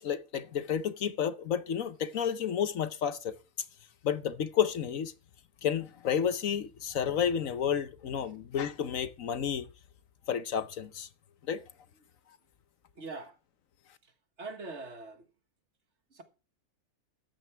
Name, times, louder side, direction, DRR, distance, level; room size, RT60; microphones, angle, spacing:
voice 1, 0.0-3.4 4.0-5.1 5.6-9.7 10.3-11.1 11.5-11.6, left 8 dB, 65° left, 1.2 m, -31 dB
voice 2, 12.9-13.4 14.4-15.3 16.1-16.2, right 3 dB, 50° right, 1.8 m, -42 dB
13.5 x 9.4 x 3.4 m
omnidirectional pair, 1.6 m